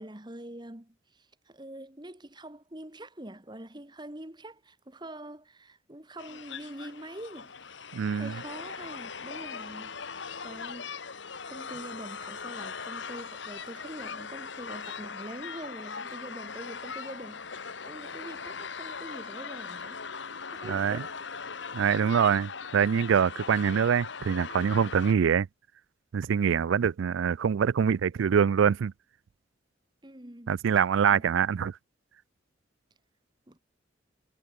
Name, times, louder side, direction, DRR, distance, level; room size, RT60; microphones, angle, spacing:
voice 1, 0.0-7.5 8.1-10.9 11.5-20.0 20.5-21.2 30.0-30.5 31.1-31.2 33.5-33.6, right 1 dB, 25° right, 1.7 m, -44 dB
sound 1, 6.2-25.1, left 5 dB, 70° left, 1.6 m, -40 dB
voice 2, 7.9-8.3 20.6-21.0 21.7-25.5 26.1-28.9 30.5-31.7, right 7 dB, 85° right, 0.4 m, -24 dB
head